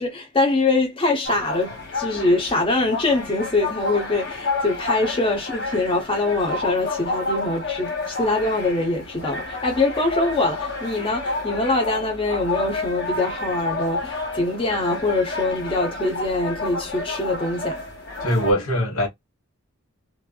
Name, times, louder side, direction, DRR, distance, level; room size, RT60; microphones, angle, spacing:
voice 1, 0.0-17.8, left 2 dB, 25° left, 0.7 m, -23 dB
sound 1, 1.2-18.5, left 3 dB, 50° left, 1.5 m, -30 dB
voice 2, 18.2-19.1, equal, 70° left, 1.4 m, -21 dB
3.1 x 2.5 x 2.3 m
head